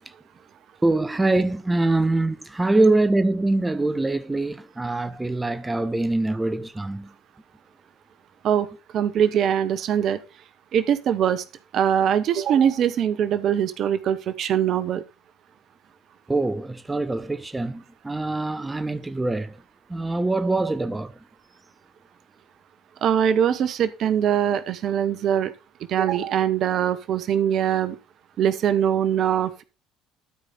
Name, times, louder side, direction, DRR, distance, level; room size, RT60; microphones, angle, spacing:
voice 1, 0.8-7.1 16.3-19.5 19.9-21.1, right 2 dB, 15° right, 0.8 m, -24 dB
voice 2, 8.9-10.2 10.7-11.4 11.7-15.0 23.0-25.5 25.9-27.9 28.4-29.6, right 9 dB, 55° right, 0.9 m, -22 dB
13.0 x 5.0 x 4.2 m
hypercardioid pair, 60°, 0 cm